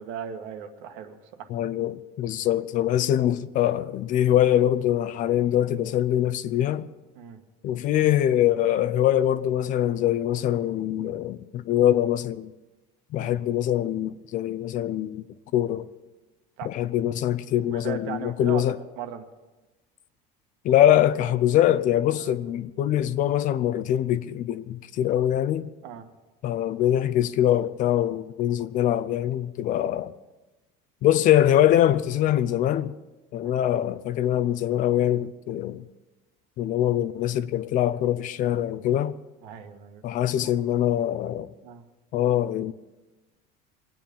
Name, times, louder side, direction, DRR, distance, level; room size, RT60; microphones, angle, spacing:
voice 1, 0.0-1.5 7.2-7.4 13.2-13.4 16.6-16.7 17.7-19.2 22.2-22.3 25.8-26.1 33.4-33.6 39.4-40.0 41.6-41.8, right 8 dB, 75° right, 1.8 m, -37 dB
voice 2, 1.5-6.9 7.6-12.5 13.1-15.2 15.5-15.9 16.6-18.8 20.6-25.7 26.4-30.1 31.0-32.9 33.3-35.8 36.6-39.2 40.0-41.5 42.1-42.7, left 11 dB, 40° left, 0.5 m, -23 dB
23.5 x 9.1 x 5.4 m
cardioid pair, 160°, 20 cm